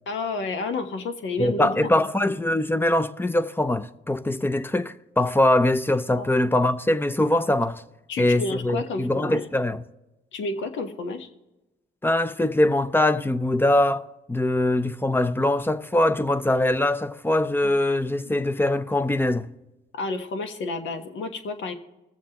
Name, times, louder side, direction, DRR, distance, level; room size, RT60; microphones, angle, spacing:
voice 1, 0.1-1.9 6.1-6.3 8.1-9.4 10.3-11.3 17.6-17.7 18.2-18.4 19.9-21.7, left 3 dB, 75° left, 1.3 m, -30 dB
voice 2, 1.4-7.8 8.2-9.8 12.0-19.5, left 1 dB, 10° left, 0.5 m, -22 dB
21.5 x 7.4 x 2.9 m
cardioid pair, 90°, 20 cm